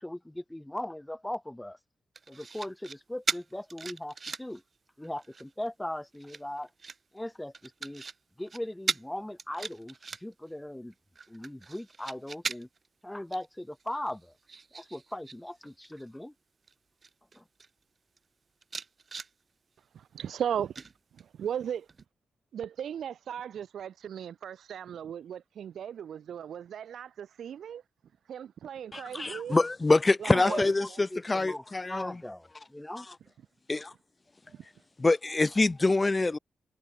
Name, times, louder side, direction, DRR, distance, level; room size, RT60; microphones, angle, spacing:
voice 1, 0.0-1.8 2.3-4.6 5.0-6.7 7.1-8.0 8.4-10.9 11.3-12.7 13.0-14.3 14.7-16.3 17.3-17.4 30.3-33.1, left 1 dB, 10° left, 2.2 m, -39 dB
sound 1, 2.1-3.0 3.3-4.6 5.0-5.5 6.1-7.0 7.5-8.2 8.5-8.6 8.9-9.1 9.4-10.5 10.9-12.9 13.3-13.5 13.8-15.4 15.6-16.0 16.7-16.8 17.0-17.7 18.2-18.3 18.6-19.3 20.7-21.4 21.9-22.0, right 4 dB, 40° right, 1.4 m, -38 dB
voice 2, 19.9-20.7 21.2-21.9 22.5-27.8 28.3-29.6 30.2-30.6, right 9 dB, 90° right, 5.9 m, -36 dB
voice 3, 28.9-32.2 33.7-33.9 35.0-36.4, left 3 dB, 25° left, 1.1 m, -25 dB
wide cardioid pair, 115°, 0 cm